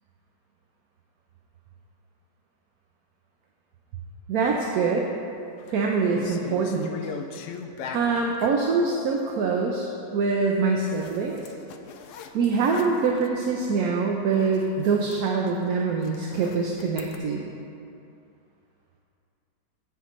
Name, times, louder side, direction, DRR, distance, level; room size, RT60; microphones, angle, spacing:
voice 1, 4.3-5.1 5.7-6.9 7.9-11.4 12.3-17.4, right 4 dB, 65° right, 0 dB, 1.0 m, -24 dB
sound 1, 5.4-5.8 6.1-8.6 10.9-13.5 13.9-14.1 14.4-17.2, left 6 dB, 90° left, 0.6 m, -41 dB
15.5 x 5.9 x 3.1 m, 2.6 s
omnidirectional pair, 1.9 m